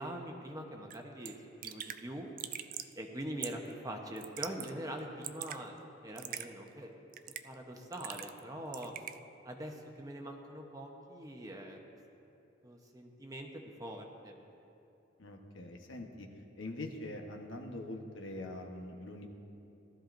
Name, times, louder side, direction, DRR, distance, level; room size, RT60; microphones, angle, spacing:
voice 1, 0.0-1.4 1.6-2.3 3.0-5.8 6.0-7.0 7.4-8.9 9.4-11.8 12.6-13.5 13.8-14.4, right 1 dB, 20° right, 2 dB, 0.9 m, -43 dB
Raindrop / Drip, 0.9-1.0 1.2-1.3 1.6-2.0 2.4-2.9 3.4-3.7 4.2-4.7 5.0-5.6 6.2-6.5 7.1-7.5 7.9-8.4 8.7-9.2, right 11 dB, 45° right, 0.3 m, -42 dB
voice 2, 15.2-16.3 16.6-19.3, left 1 dB, 70° left, 2 dB, 1.1 m, -43 dB
18.0 x 13.0 x 2.6 m, 2.9 s
head